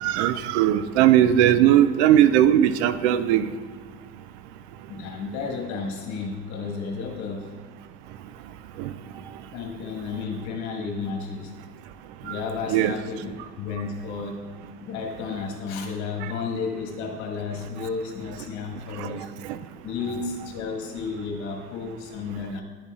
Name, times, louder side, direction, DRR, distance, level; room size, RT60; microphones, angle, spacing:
voice 1, 0.0-3.4 12.7-12.9, right 11 dB, 80° right, 12 dB, 0.5 m, -18 dB
voice 2, 4.9-7.5 9.5-11.5 12.2-13.3 13.6-14.4 14.8-19.3 19.8-22.6, left 5 dB, 60° left, 2 dB, 1.6 m, -32 dB
10.0 x 4.1 x 3.6 m, 1.5 s
supercardioid pair, 110°, 33 cm